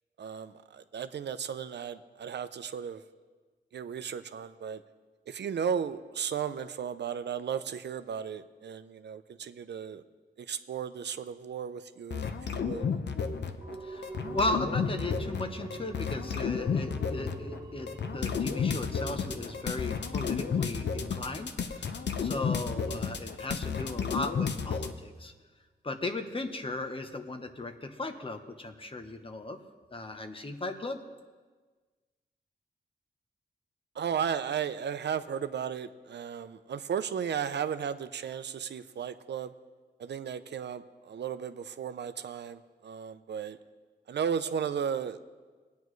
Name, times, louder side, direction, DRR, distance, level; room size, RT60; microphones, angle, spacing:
voice 1, 0.2-3.0 3.7-4.8 5.3-10.0 10.4-12.9 34.0-39.5 40.0-43.6 44.1-45.2, right 7 dB, 75° right, 11 dB, 0.5 m, -35 dB
sound 1, 12.1-13.8 14.0-24.9, left 6 dB, 75° left, 0.7 m, -32 dB
sound 2, 13.6-23.0 23.3-23.4, right 2 dB, 20° right, 0.8 m, -45 dB
voice 2, 13.8-25.3 25.8-29.6 29.9-31.0, left 2 dB, 30° left, 7 dB, 0.8 m, -36 dB
20.0 x 9.3 x 3.2 m, 1.4 s
wide cardioid pair, 110°, 18 cm